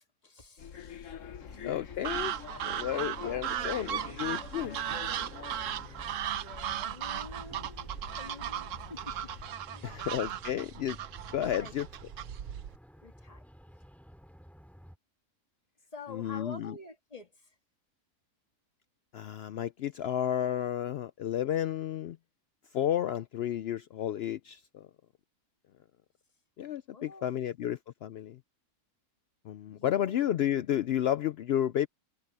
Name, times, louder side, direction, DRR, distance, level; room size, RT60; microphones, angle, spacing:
voice 1, 0.2-2.0 2.9-4.3 6.3-7.9 8.2-9.3 9.7-10.1 11.6-11.7 13.0-13.5 15.9-17.5 26.9-27.7 29.7-30.2, left 3 dB, 25° left, 2.0 m, -49 dB
sound 1, 0.6-9.6, left 7 dB, 55° left, 1.3 m, -46 dB
sound 2, 1.2-15.0, equal, ahead, 2.6 m, -55 dB
voice 2, 1.6-2.3 2.6-4.8 9.8-11.0 11.3-11.9 16.1-16.7 19.1-22.2 22.7-24.9 26.6-28.4 29.4-31.9, left 11 dB, 90° left, 0.5 m, -32 dB
sound 3, 2.0-12.8, right 10 dB, 65° right, 1.0 m, -37 dB
omnidirectional pair, 1.6 m